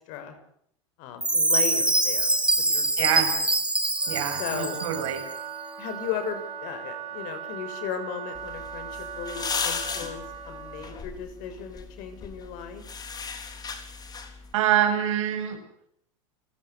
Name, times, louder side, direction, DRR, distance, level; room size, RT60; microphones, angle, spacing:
voice 1, 1.0-3.2 4.4-4.8 5.8-12.8, left 8 dB, 55° left, 9 dB, 6.0 m, -36 dB
Chime, 1.2-5.2, right 2 dB, 5° right, 3.4 m, -24 dB
voice 2, 3.0-3.3 4.1-5.2 14.5-15.6, right 10 dB, 75° right, 6 dB, 7.3 m, -25 dB
Wind instrument woodwind instrument, 3.9-11.0, right 8 dB, 40° right, 5.7 m, -38 dB
sound 1, 8.3-14.5, left 5 dB, 25° left, 4.1 m, -36 dB
29.5 x 14.5 x 8.4 m, 0.70 s
hypercardioid pair, 105°, 16 cm